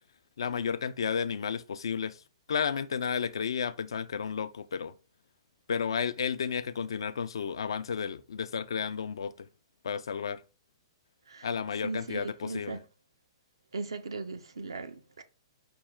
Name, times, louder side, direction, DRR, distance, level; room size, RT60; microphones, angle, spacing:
voice 1, 0.4-2.2 2.5-4.9 5.7-9.3 9.8-10.4 11.4-12.8, left 6 dB, 75° left, 0.3 m, -32 dB
voice 2, 11.8-12.8 13.7-15.2, right 3 dB, 85° right, 0.6 m, -38 dB
5.2 x 2.4 x 3.5 m
hypercardioid pair, 120°, 3 cm